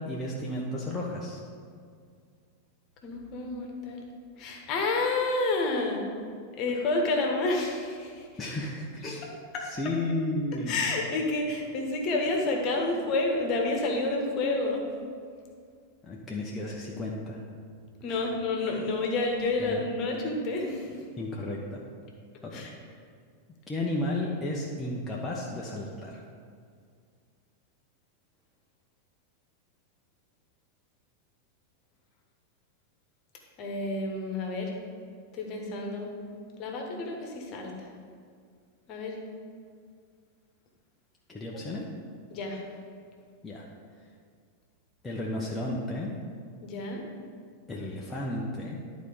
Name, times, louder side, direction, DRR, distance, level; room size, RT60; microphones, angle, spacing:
voice 1, 0.0-1.4 8.4-9.2 9.6-10.8 16.0-17.4 18.1-18.2 19.6-19.8 21.1-21.8 22.4-22.7 23.7-26.2 41.3-41.9 43.4-43.7 45.0-46.1 47.7-48.8, left 1 dB, 15° left, -4 dB, 0.9 m, -33 dB
voice 2, 3.0-4.0 4.4-6.0 6.6-8.3 10.7-14.8 18.0-20.9 22.5-22.7 33.6-34.7 35.3-36.1 36.6-37.7 38.9-39.1 42.3-42.6 46.6-47.0, left 2 dB, 40° left, 1 dB, 1.5 m, -29 dB
11.5 x 4.1 x 5.1 m, 2.1 s
figure-of-eight pair, 90°, 0 cm